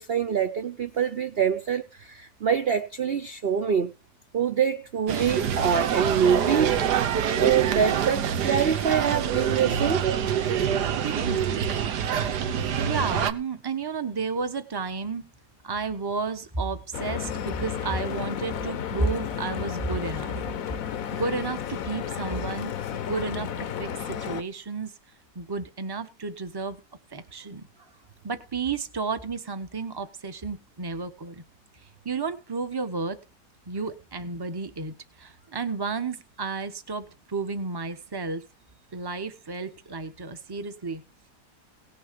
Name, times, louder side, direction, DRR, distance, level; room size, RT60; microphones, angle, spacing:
voice 1, 0.0-3.9 4.3-6.7 7.4-10.1, right 7 dB, 45° right, 0.8 m, -25 dB
sound 1, 5.1-13.3, right 8 dB, 80° right, 1.6 m, -26 dB
voice 2, 11.0-11.4 12.8-15.3 15.6-20.3 21.1-24.9 25.3-26.8 27.1-27.7 28.2-31.4 32.0-33.2 33.7-38.4 38.9-41.0, right 4 dB, 15° right, 1.0 m, -32 dB
Stream / Boat Water vehicle, 16.9-24.4, left 9 dB, 60° left, 1.2 m, -33 dB
18.0 x 6.7 x 5.2 m
omnidirectional pair, 1.8 m